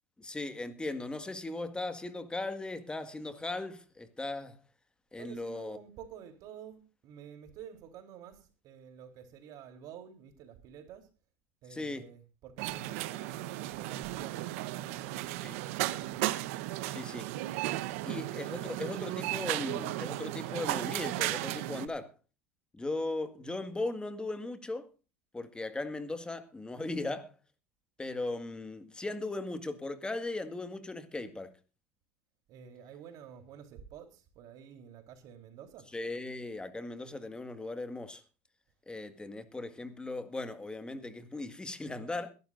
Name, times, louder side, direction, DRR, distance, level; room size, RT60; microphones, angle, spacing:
voice 1, 0.2-4.6 5.1-5.8 11.7-12.0 15.4-15.5 16.9-17.3 18.0-22.1 22.8-24.9 25.3-27.3 28.0-31.5 35.9-38.2 38.9-42.3, left 2 dB, 10° left, 1.9 m, -38 dB
voice 2, 5.2-11.1 11.6-16.2 32.5-35.9, right 8 dB, 55° right, 3.7 m, -50 dB
sound 1, 12.6-21.9, right 16 dB, 75° right, 1.0 m, -35 dB
22.0 x 12.0 x 2.6 m
supercardioid pair, 100°, 7 cm